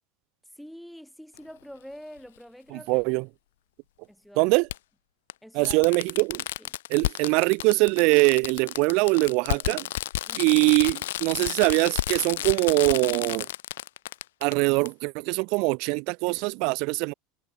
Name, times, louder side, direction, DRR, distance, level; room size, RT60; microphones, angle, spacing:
voice 1, 0.5-3.1 4.1-4.6 5.4-5.8 6.6-6.7 10.3-10.6, equal, ahead, 4.1 m, -45 dB
Fireworks, 1.4-1.5 3.0-3.1 4.7-4.8 5.3-5.4 5.7-14.5 14.9-15.0, left 14 dB, 80° left, 0.4 m, -31 dB
voice 2, 2.7-3.2 4.4-4.7 5.5-6.4 6.9-9.9 10.4-13.5 14.4-17.1, right 30 dB, 60° right, 0.3 m, -23 dB
hypercardioid pair, 100°, 0 cm